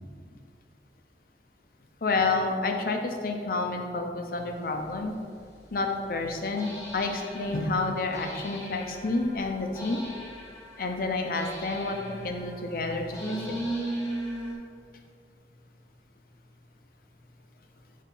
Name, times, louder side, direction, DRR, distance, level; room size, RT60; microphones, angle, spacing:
voice 1, 2.0-5.1 5.7-10.0 10.8-13.2 13.5-13.6, left 3 dB, 50° left, 3 dB, 0.6 m, -29 dB
sound 1, 5.0-5.1 6.6-14.5, right 1 dB, 15° left, 0.9 m, -38 dB
7.1 x 4.2 x 3.8 m, 2.2 s
head